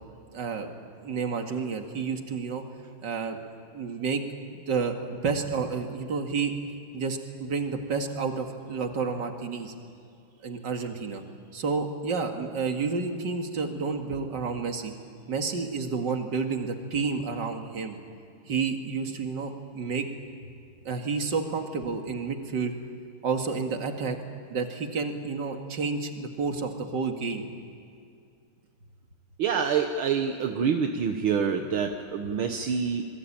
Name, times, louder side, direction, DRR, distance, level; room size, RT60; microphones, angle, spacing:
voice 1, 0.3-0.7 1.0-2.6 3.0-3.4 3.7-4.2 4.7-6.5 6.9-9.7 10.4-11.2 11.5-14.9 15.3-18.0 18.5-20.1 20.8-22.7 23.2-24.2 24.5-27.5, right 5 dB, 55° right, 4 dB, 2.6 m, -30 dB
voice 2, 29.4-33.0, right 6 dB, 75° right, 5 dB, 2.0 m, -26 dB
27.0 x 22.5 x 8.8 m, 2.4 s
omnidirectional pair, 2.3 m